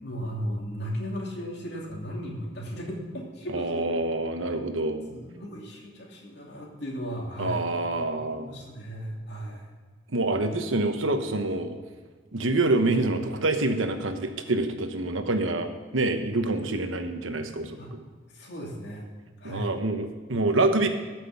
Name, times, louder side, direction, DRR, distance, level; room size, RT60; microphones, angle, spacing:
voice 1, 0.0-4.0 5.1-7.7 8.1-9.7 17.8-18.0 18.3-19.1 19.4-19.8, equal, 60° left, -2 dB, 2.7 m, -36 dB
voice 2, 3.5-5.0 7.4-8.5 10.1-11.8 12.3-18.0 19.4-20.9, right 2 dB, 90° right, 7 dB, 1.1 m, -26 dB
13.5 x 6.1 x 5.9 m, 1.5 s
head